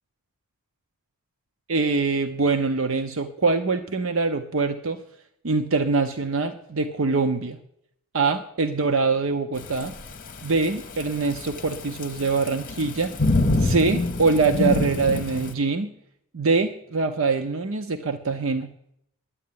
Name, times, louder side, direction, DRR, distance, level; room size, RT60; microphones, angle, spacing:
voice 1, 1.7-5.0 5.4-7.6 8.1-9.9 10.4-13.1 13.6-15.9 16.3-18.7, right 4 dB, 65° right, 7 dB, 0.8 m, -24 dB
Thunderstorm / Rain, 9.6-15.5, left 2 dB, 35° left, 1.0 m, -27 dB
9.9 x 9.7 x 9.3 m, 0.73 s
head